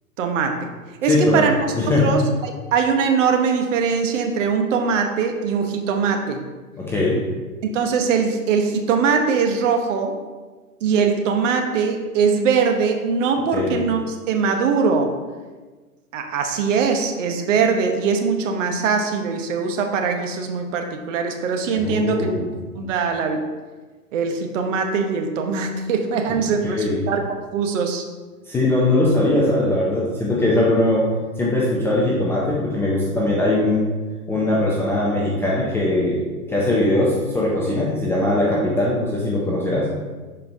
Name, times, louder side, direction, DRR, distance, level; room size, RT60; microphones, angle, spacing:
voice 1, 0.2-0.6 1.0-1.5 2.0-6.4 7.6-10.2 10.8-15.1 16.1-22.3 22.8-23.5 24.1-27.2 27.5-28.0, right 5 dB, 55° right, 4 dB, 1.1 m, -21 dB
voice 2, 1.1-1.4 1.8-2.1 6.8-7.2 13.5-13.8 21.8-22.5 26.6-27.0 28.4-31.1 31.4-33.8 34.3-36.2 36.5-39.9, left 1 dB, 5° left, -6 dB, 0.4 m, -20 dB
11.5 x 4.5 x 2.7 m, 1.3 s
hypercardioid pair, 120°, 45 cm